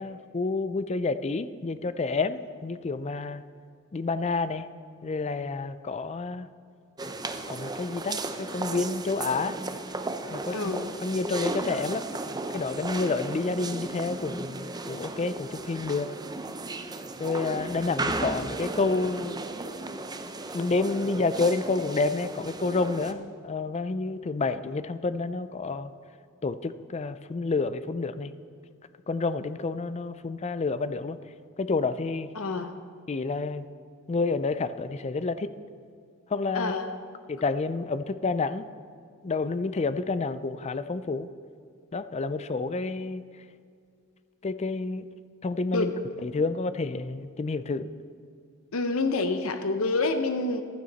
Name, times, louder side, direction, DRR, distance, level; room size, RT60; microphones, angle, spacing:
voice 1, 0.0-3.4 3.9-4.7 5.0-6.5 7.5-9.6 10.3-10.7 11.0-16.1 17.2-19.4 20.5-25.9 26.4-28.3 29.1-31.2 31.6-32.3 33.1-33.7 34.1-35.5 36.3-36.7 37.3-38.6 39.2-41.3 41.9-43.2 44.4-45.1 45.4-45.9 46.2-47.9, left 3 dB, 30° left, 13 dB, 0.4 m, -29 dB
sound 1, 7.0-23.1, right 2 dB, 20° right, 0.6 m, -35 dB
voice 2, 10.5-11.0 32.3-32.7 36.5-37.0 45.7-46.1 48.7-50.6, left 3 dB, 90° left, 7 dB, 0.8 m, -28 dB
15.0 x 11.5 x 4.1 m, 2.2 s
head